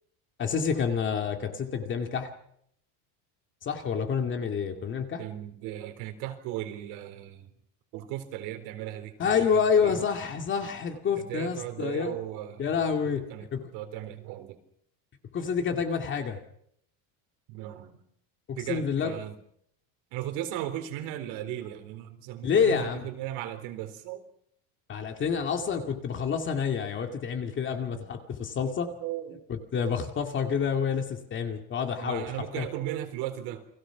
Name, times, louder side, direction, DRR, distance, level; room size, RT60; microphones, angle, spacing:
voice 1, 0.4-2.3 3.6-5.2 9.2-12.2 12.6-13.7 15.3-16.4 18.5-19.1 22.4-23.1 24.9-28.9 29.5-32.7, left 6 dB, 25° left, 2.2 m, -28 dB
voice 2, 5.2-7.5 7.9-9.1 9.4-10.1 11.2-12.9 13.1-14.6 17.5-18.0 18.6-19.4 20.1-24.2 27.7-28.1 29.0-29.4 32.0-33.7, right 12 dB, 60° right, 4.0 m, -37 dB
30.0 x 23.0 x 6.0 m
cardioid pair, 175°, 45 cm